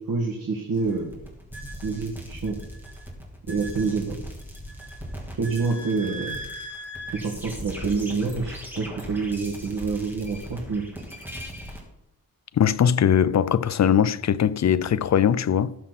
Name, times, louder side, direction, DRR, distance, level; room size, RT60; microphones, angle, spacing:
voice 1, 0.1-1.2 1.8-2.6 3.5-4.2 5.4-6.4 7.2-10.9, right 4 dB, 80° right, 2.1 m, -27 dB
sound 1, 0.7-11.8, equal, 5° right, 3.0 m, -38 dB
voice 2, 12.5-15.8, left 8 dB, 50° left, 0.5 m, -20 dB
19.0 x 7.3 x 4.2 m
wide cardioid pair, 140°, 35 cm